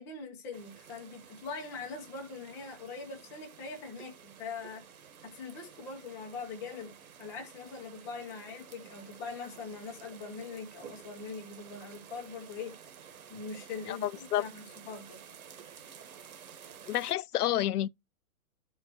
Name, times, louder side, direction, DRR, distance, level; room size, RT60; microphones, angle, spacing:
voice 1, 0.0-4.8 5.2-12.8 13.3-15.2, left 4 dB, 5° left, 0.6 m, -42 dB
sound 1, 0.5-17.1, right 8 dB, 70° right, 1.5 m, -52 dB
voice 2, 13.9-14.4 16.9-17.9, left 12 dB, 85° left, 0.6 m, -29 dB
13.0 x 4.5 x 2.9 m
hypercardioid pair, 170°, 44 cm